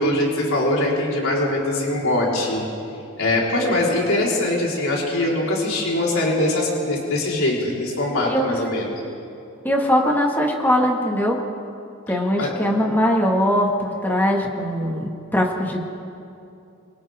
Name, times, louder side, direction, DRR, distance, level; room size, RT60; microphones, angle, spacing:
voice 1, 0.0-2.6 3.2-8.9 12.4-12.5, left 1 dB, 80° left, -4 dB, 4.7 m, -22 dB
voice 2, 9.6-11.4 12.1-15.8, equal, 10° left, 0 dB, 2.2 m, -21 dB
30.0 x 26.5 x 3.8 m, 2.7 s
head